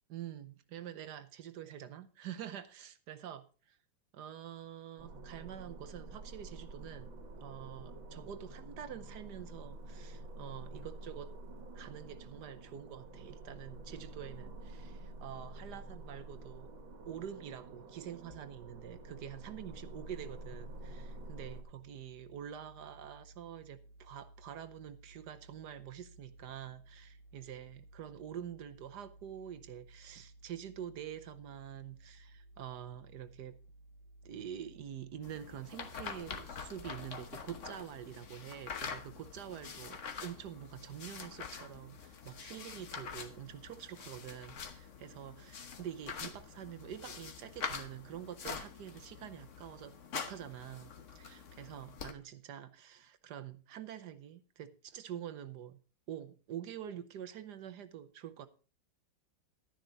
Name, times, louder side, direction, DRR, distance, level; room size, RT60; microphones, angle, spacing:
voice 1, 0.1-3.4 4.1-7.1 7.4-11.3 11.7-16.7 17.0-33.6 34.2-55.8 56.1-58.5, right 10 dB, 65° right, 1.3 m, -46 dB
sound 1, 5.0-21.6, right 2 dB, 90° right, 2.4 m, -49 dB
sound 2, 18.3-37.6, right 1 dB, 75° left, 2.1 m, -58 dB
sound 3, 35.2-52.1, left 6 dB, 45° left, 1.2 m, -45 dB
12.0 x 10.5 x 3.9 m
omnidirectional pair, 2.1 m